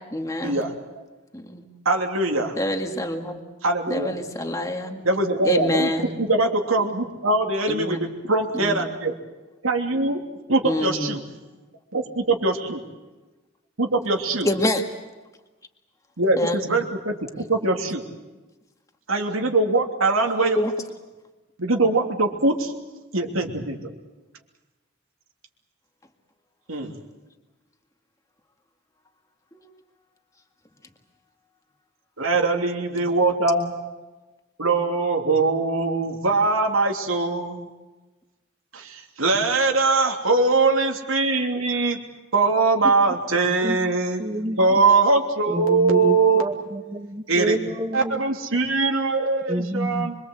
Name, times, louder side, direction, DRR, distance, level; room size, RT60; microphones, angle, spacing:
voice 1, 0.1-0.6 1.3-1.7 2.6-3.4 3.9-5.1 5.4-6.1 7.7-8.0 8.5-8.9 10.6-11.2 14.4-14.8 16.4-16.6 20.6-20.7 29.5-29.7, left 1 dB, 15° left, 4 dB, 1.9 m, -26 dB
voice 2, 1.8-2.5 3.6-4.1 5.0-5.9 6.2-9.1 9.6-10.2 10.5-11.2 11.9-12.8 13.8-14.5 16.2-17.1 17.5-18.0 19.1-20.6 21.6-22.7 23.1-23.9 26.7-27.0 32.2-33.7 34.6-37.6 38.7-42.0 42.3-44.2 44.6-46.4 47.3-47.6 47.9-50.2, right 3 dB, 85° right, 2 dB, 3.1 m, -22 dB
voice 3, 44.2-44.8 45.5-48.2 49.5-50.1, right 1 dB, 25° right, 8 dB, 1.6 m, -28 dB
25.5 x 23.5 x 8.0 m, 1.1 s
head